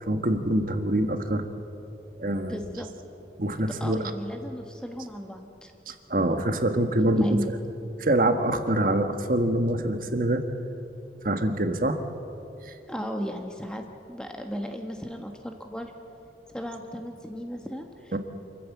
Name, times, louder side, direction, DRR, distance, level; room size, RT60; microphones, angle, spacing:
voice 1, 0.0-1.4 2.2-2.6 3.4-4.1 5.9-7.4 8.0-10.4 11.2-12.0 12.7-12.8 18.1-18.2, right 1 dB, 50° right, 7 dB, 1.5 m, -25 dB
voice 2, 2.5-2.9 3.8-5.7 7.0-7.5 12.9-13.8 14.1-15.9 16.5-18.2, equal, 5° left, 3 dB, 1.3 m, -35 dB
28.0 x 14.5 x 8.4 m, 2.7 s
head